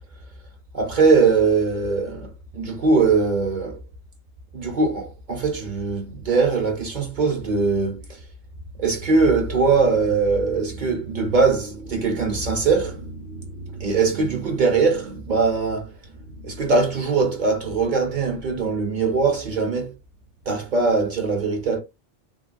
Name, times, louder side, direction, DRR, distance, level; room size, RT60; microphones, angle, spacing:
voice 1, 0.7-3.9 4.5-8.2 8.8-16.0 16.3-19.9 20.5-21.8, right 4 dB, 50° right, 0.6 m, -21 dB
3.4 x 2.1 x 2.5 m
omnidirectional pair, 1.2 m